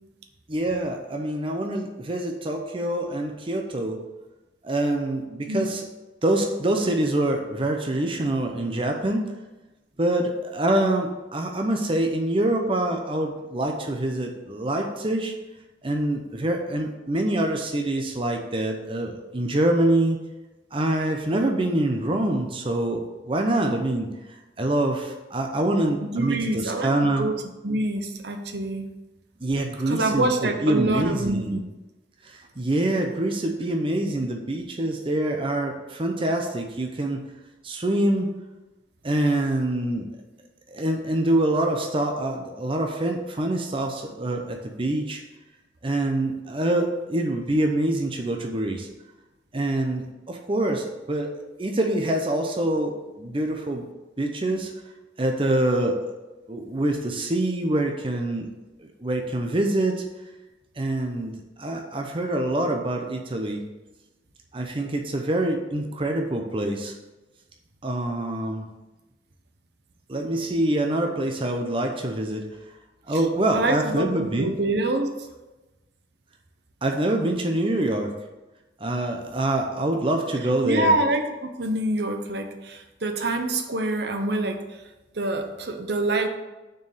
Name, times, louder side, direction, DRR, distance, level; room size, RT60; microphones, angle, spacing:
voice 1, 0.5-4.0 4.6-5.8 6.2-9.2 10.0-15.3 15.8-20.2 20.7-24.1 24.6-27.3 29.4-31.6 32.2-37.2 37.6-38.3 39.0-40.1 40.7-45.2 45.8-48.9 49.5-51.3 51.6-53.8 54.2-54.7 55.2-56.0 56.5-58.5 58.8-60.0 60.8-63.6 64.5-66.9 67.8-68.7 70.1-72.5 73.1-74.5 76.8-78.1 78.8-80.9, right 1 dB, 30° right, 3 dB, 0.7 m, -25 dB
voice 2, 26.0-26.9 27.2-27.3 27.6-28.9 29.9-31.6 73.1-73.2 73.5-75.1 80.6-84.6 85.1-86.3, right 2 dB, 65° right, 5 dB, 0.9 m, -26 dB
6.4 x 4.6 x 6.6 m, 1.1 s
head